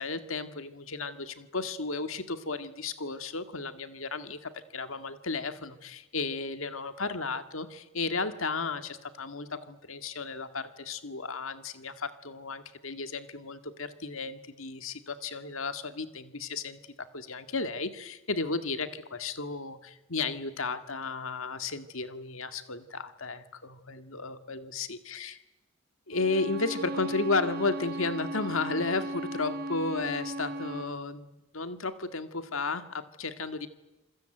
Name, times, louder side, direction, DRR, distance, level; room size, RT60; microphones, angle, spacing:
voice 1, 0.0-16.8 17.1-25.4 26.1-33.7, left 3 dB, 65° left, 10 dB, 2.0 m, -34 dB
Bowed string instrument, 26.1-31.0, right 1 dB, 45° right, 1.1 m, -36 dB
27.5 x 21.0 x 9.2 m, 1.0 s
head